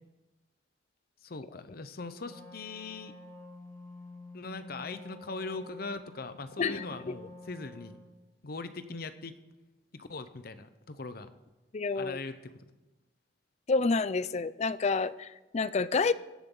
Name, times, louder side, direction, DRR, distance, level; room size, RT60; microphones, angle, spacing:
voice 1, 1.2-3.1 4.3-8.0 8.4-9.4 9.9-11.3 12.0-12.7, left 3 dB, 55° left, 11 dB, 0.8 m, -41 dB
Wind instrument woodwind instrument, 2.2-8.2, left 2 dB, 20° left, 5.1 m, -49 dB
voice 2, 11.7-12.2 13.7-16.1, left 4 dB, 40° left, 16 dB, 0.4 m, -28 dB
16.5 x 11.0 x 3.9 m, 1.1 s
head